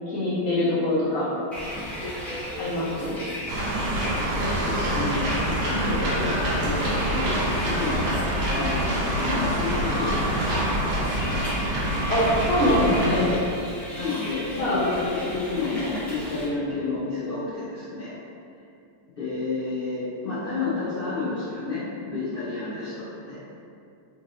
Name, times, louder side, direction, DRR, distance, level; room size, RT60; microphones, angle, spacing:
voice 1, 0.1-1.3 2.6-3.2 12.1-13.3 14.6-15.0, left 1 dB, 50° left, -12 dB, 1.4 m, -23 dB
Bus, 1.5-16.5, left 1 dB, ahead, 0.4 m, -36 dB
sound 1, 3.5-13.2, right 1 dB, 70° right, 1.4 m, -26 dB
voice 2, 3.8-10.8 13.1-13.5 14.0-18.1 19.2-23.4, left 3 dB, 80° left, -13 dB, 0.5 m, -31 dB
4.3 x 3.1 x 2.6 m, 2.5 s
omnidirectional pair, 2.3 m